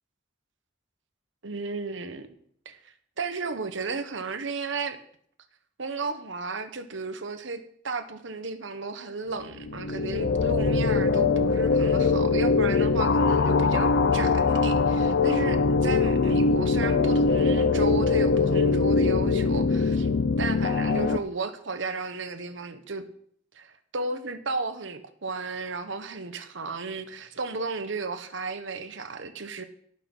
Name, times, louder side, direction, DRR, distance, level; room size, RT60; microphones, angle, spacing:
voice 1, 1.4-2.3 2.6-5.0 5.8-20.1 20.4-23.0 23.5-29.6, right 4 dB, 70° right, 9 dB, 1.3 m, -34 dB
sound 1, 9.6-21.2, left 4 dB, 65° left, 0.6 m, -22 dB
17.5 x 6.5 x 5.6 m, 0.65 s
head